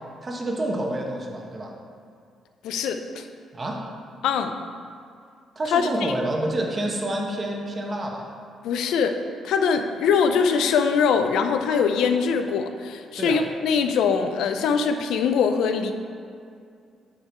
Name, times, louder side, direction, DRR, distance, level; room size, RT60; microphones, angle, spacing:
voice 1, 0.2-1.7 3.5-3.8 5.6-8.3 13.2-13.4, right 1 dB, 35° right, 0 dB, 1.1 m, -28 dB
voice 2, 2.6-3.2 4.2-4.6 5.7-6.1 8.6-9.2 9.4-15.9, left 6 dB, 85° left, 7 dB, 0.5 m, -22 dB
9.7 x 3.7 x 4.4 m, 2.3 s
cardioid pair, 90°, 0 cm